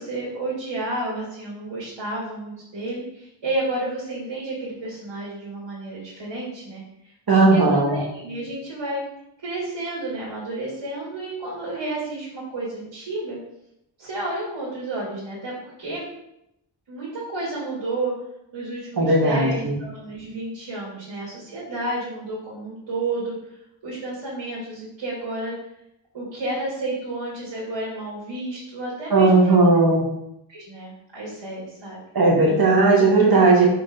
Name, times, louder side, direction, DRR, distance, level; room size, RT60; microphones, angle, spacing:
voice 1, 0.0-6.8 7.5-9.1 9.4-13.4 14.0-16.1 16.9-18.1 18.5-23.6 23.8-25.5 26.1-29.6 30.5-32.0, right 2 dB, 70° right, -7 dB, 2.7 m, -31 dB
voice 2, 7.3-8.0 19.0-19.8 29.1-30.0 32.2-33.7, right 3 dB, 50° right, -2 dB, 1.9 m, -16 dB
5.9 x 5.2 x 5.2 m, 0.81 s
wide cardioid pair, 165°, 47 cm